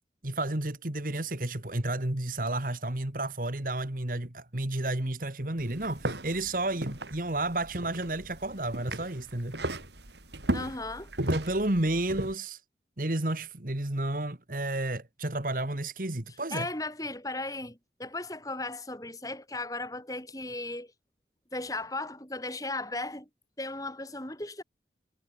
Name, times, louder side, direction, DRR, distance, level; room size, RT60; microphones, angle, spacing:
voice 1, 0.2-9.6 11.2-12.6 13.0-16.7, right 1 dB, 50° right, 2.1 m, -31 dB
sound 1, 5.6-12.3, right 1 dB, 75° right, 5.2 m, -36 dB
voice 2, 10.5-11.1 16.5-20.9 21.5-23.3 23.6-24.6, left 2 dB, 20° left, 7.4 m, -36 dB
head